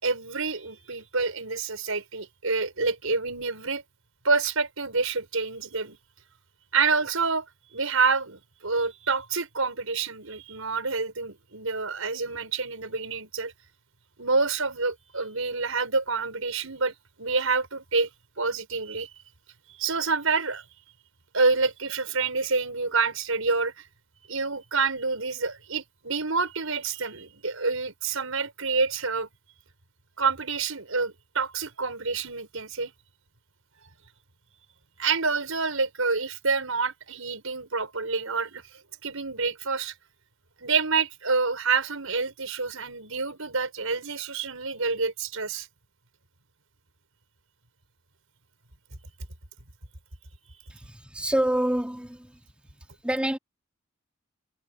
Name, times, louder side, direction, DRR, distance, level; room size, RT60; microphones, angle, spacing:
voice 1, 0.0-3.8 4.2-6.0 6.7-7.5 7.7-13.5 14.2-18.1 18.4-19.1 19.8-20.6 21.3-23.8 24.3-29.3 30.2-32.9 35.0-39.9 40.6-45.7, right 4 dB, 80° right, 5.6 m, -27 dB
voice 2, 50.7-52.4 52.7-53.4, right 1 dB, 5° right, 3.3 m, -28 dB
head